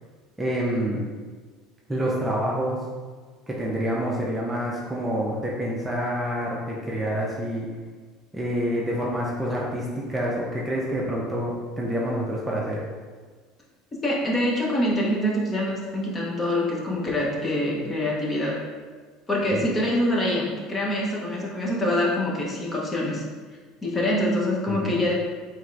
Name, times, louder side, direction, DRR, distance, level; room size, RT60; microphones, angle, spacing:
voice 1, 0.4-1.0 1.9-2.8 3.5-7.7 8.3-12.8 19.5-19.7 24.7-25.0, equal, 10° right, -4 dB, 0.7 m, -27 dB
voice 2, 14.0-18.6 19.3-23.2 23.8-25.1, left 1 dB, 25° left, -3 dB, 1.1 m, -25 dB
3.7 x 3.5 x 3.3 m, 1.5 s
supercardioid pair, 100°, 0 cm